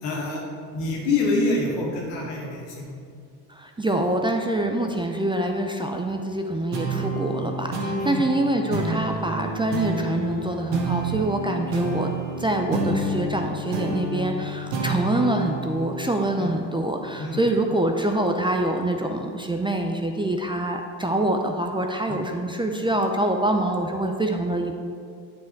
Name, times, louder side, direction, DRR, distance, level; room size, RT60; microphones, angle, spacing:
voice 1, 0.0-0.4 0.7-3.0 7.9-8.2 16.4-16.5 17.2-17.4 22.1-22.2, left 3 dB, 75° left, -2 dB, 2.2 m, -26 dB
voice 2, 3.5-12.1 12.4-24.8, right 1 dB, 10° right, 3 dB, 0.6 m, -25 dB
sound 1, 6.7-17.5, right 2 dB, 55° right, 1.7 m, -29 dB
9.2 x 5.2 x 4.6 m, 2.2 s
hypercardioid pair, 80°, 49 cm